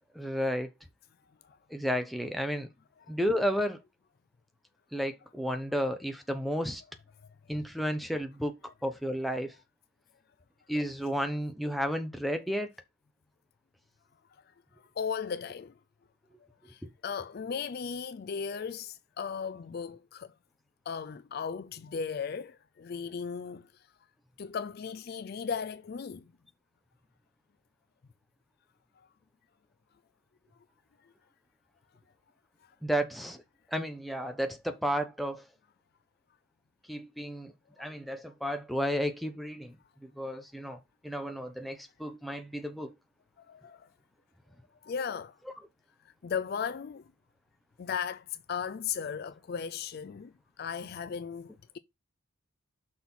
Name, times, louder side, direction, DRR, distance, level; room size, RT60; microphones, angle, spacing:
voice 1, 0.1-0.7 1.7-2.7 3.1-3.8 4.9-6.8 7.5-8.5 8.8-9.5 10.7-12.7 32.8-33.4 33.7-35.5 36.9-37.5 37.8-39.8 40.0-42.9, equal, ahead, 0.9 m, -32 dB
voice 2, 15.0-15.7 16.7-20.3 20.9-23.7 24.4-26.3 43.5-43.9 44.8-45.3 46.2-47.1 47.8-51.8, left 6 dB, 45° left, 0.3 m, -36 dB
6.0 x 4.3 x 5.5 m
head